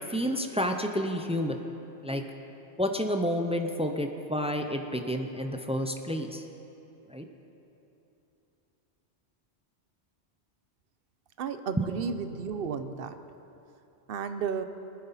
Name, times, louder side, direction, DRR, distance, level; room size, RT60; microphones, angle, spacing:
voice 1, 0.1-1.6 2.0-2.2 2.8-6.4 7.1-7.2 11.8-11.9, equal, 10° right, 5 dB, 0.4 m, -30 dB
voice 2, 11.4-13.1 14.1-14.6, right 6 dB, 60° right, 10 dB, 0.8 m, -33 dB
19.5 x 9.6 x 4.1 m, 2.9 s
omnidirectional pair, 1.2 m